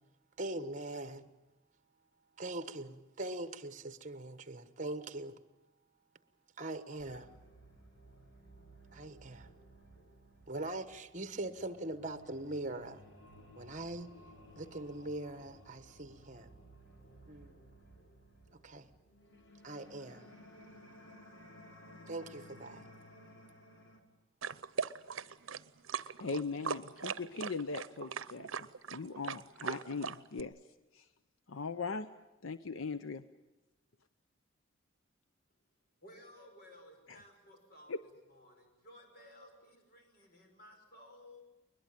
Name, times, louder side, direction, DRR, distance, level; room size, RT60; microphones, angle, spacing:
voice 1, 0.4-1.3 2.4-5.4 6.6-7.3 8.9-9.5 10.5-13.0 13.5-14.1 14.6-16.5 17.2-17.6 18.6-18.9 19.6-20.3 22.1-22.8, right 2 dB, 40° right, 1.3 m, -42 dB
sound 1, 7.0-24.0, equal, 70° left, 3.6 m, -57 dB
sound 2, 24.4-30.4, right 6 dB, 80° right, 0.8 m, -39 dB
voice 2, 26.2-30.5 30.9-31.1 31.5-32.1 32.4-33.2 37.1-37.2 37.9-38.0, left 4 dB, 90° left, 0.8 m, -39 dB
voice 3, 36.0-38.0 38.3-41.4, left 1 dB, 50° left, 5.7 m, -57 dB
22.0 x 21.0 x 9.1 m
head